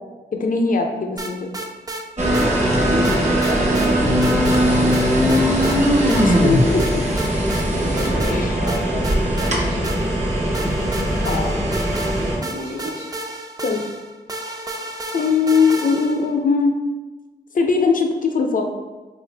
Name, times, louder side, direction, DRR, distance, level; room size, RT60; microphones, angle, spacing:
voice 1, 0.3-1.5 6.1-7.0 8.3-8.6 11.2-11.6 13.6-13.8 15.1-16.8 17.5-18.7, left 4 dB, 50° left, 4 dB, 0.5 m, -20 dB
sound 1, 1.2-2.0 2.3-2.5 3.0-3.9 4.2-4.6 4.9-5.8 6.1-6.2 6.8-7.7 8.0-8.4 8.7-10.2 10.5-16.3, right 2 dB, 20° right, 0.4 m, -32 dB
sound 2, 2.2-12.4, equal, 40° right, 0.9 m, -19 dB
voice 2, 2.7-4.8 7.6-9.0 9.3-9.9 12.4-13.1, equal, 80° right, -9 dB, 0.9 m, -30 dB
3.1 x 2.5 x 3.2 m, 1.2 s
cardioid pair, 55°, 18 cm